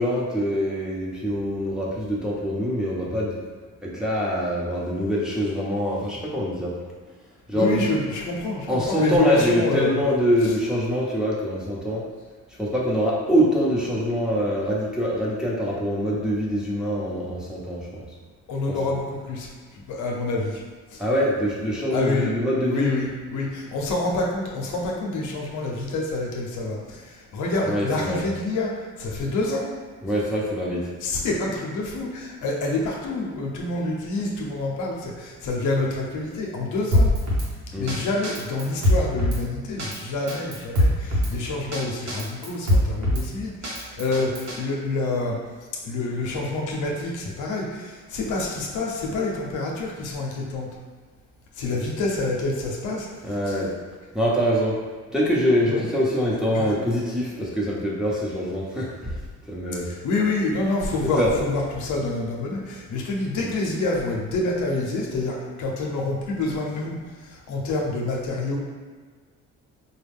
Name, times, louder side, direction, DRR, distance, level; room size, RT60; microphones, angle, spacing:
voice 1, 0.0-3.4 3.8-6.7 7.5-7.9 8.7-12.1 12.6-18.0 18.7-18.8 21.0-22.9 27.6-28.2 30.0-30.9 37.7-37.9 51.7-51.8 53.2-53.7 54.1-54.8 55.1-59.2 59.5-59.9 61.0-61.3 63.4-63.5, equal, ahead, -7 dB, 1.0 m, -24 dB
voice 2, 7.5-9.9 10.4-10.5 18.5-19.5 19.9-20.6 21.9-22.3 22.7-27.0 27.3-28.7 29.0-29.7 31.0-37.1 37.8-45.4 45.8-50.7 51.6-53.1 53.5-53.6 55.7-55.8 56.5-56.7 59.9-66.9 67.5-68.6, left 2 dB, 80° left, -2 dB, 0.8 m, -27 dB
Drum kit, 36.9-37.5 37.9-38.0 38.2-39.4 39.8-40.0 40.3-41.3 41.7-41.8 42.1-43.2 43.6-44.6, left 1 dB, 60° right, 1.1 m, -21 dB
4.2 x 2.3 x 3.5 m, 1.5 s
cardioid pair, 90°, 30 cm